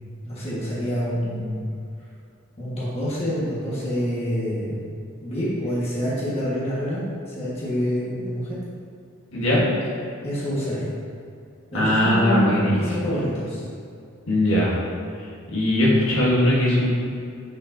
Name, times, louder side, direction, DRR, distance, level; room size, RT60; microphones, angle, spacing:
voice 1, 0.2-1.6 2.6-4.8 5.2-7.0 7.3-8.6 10.2-10.9 11.7-13.6, equal, 30° left, -8 dB, 1.6 m, -26 dB
voice 2, 9.3-9.6 11.7-13.1 14.3-14.8 15.5-16.9, left 1 dB, 65° left, -6 dB, 1.6 m, -20 dB
9.3 x 5.2 x 2.8 m, 2.4 s
head